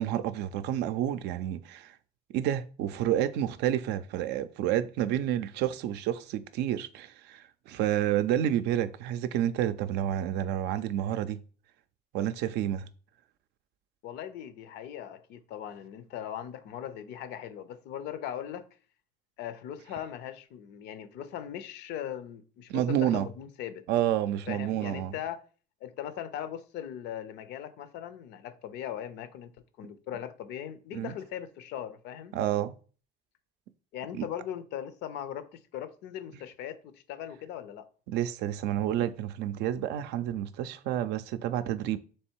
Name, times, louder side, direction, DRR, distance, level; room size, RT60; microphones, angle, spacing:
voice 1, 0.0-1.9 2.3-11.4 12.1-12.9 22.7-23.3 23.9-25.1 30.9-31.1 32.3-32.7 34.2-34.3 38.1-42.0, right 11 dB, 85° right, 0.4 m, -29 dB
voice 2, 14.0-18.7 19.4-23.8 24.5-25.4 25.8-32.3 33.9-37.8, left 10 dB, 85° left, 0.5 m, -39 dB
3.3 x 3.2 x 4.4 m
cardioid pair, 110°, 17 cm